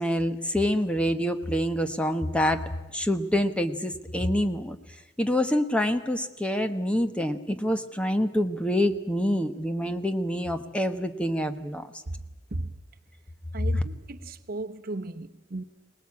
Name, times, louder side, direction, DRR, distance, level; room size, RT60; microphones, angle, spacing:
voice 1, 0.0-2.6 2.9-4.8 5.2-11.9, equal, 5° left, 1.1 m, -26 dB
voice 2, 13.5-15.6, right 2 dB, 50° right, 1.0 m, -35 dB
24.0 x 19.5 x 8.6 m
head